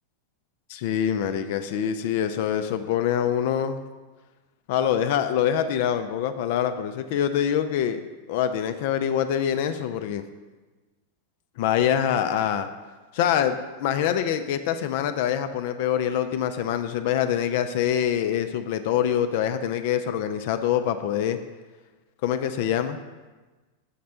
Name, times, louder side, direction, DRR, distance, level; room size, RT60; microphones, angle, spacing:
voice 1, 0.7-3.8 4.7-8.0 8.3-10.2 11.6-12.7 13.1-21.4 22.2-23.0, left 9 dB, 50° left, 9 dB, 0.4 m, -25 dB
7.4 x 4.2 x 5.7 m, 1.3 s
figure-of-eight pair, 90°, 0 cm